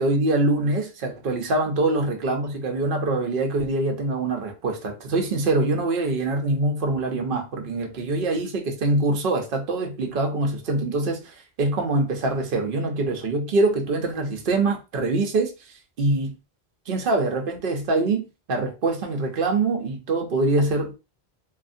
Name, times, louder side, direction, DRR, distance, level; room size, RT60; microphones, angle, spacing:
voice 1, 0.0-16.3 16.9-20.9, right 2 dB, 60° right, 0.9 m, -24 dB
2.7 x 2.6 x 2.5 m
omnidirectional pair, 1.1 m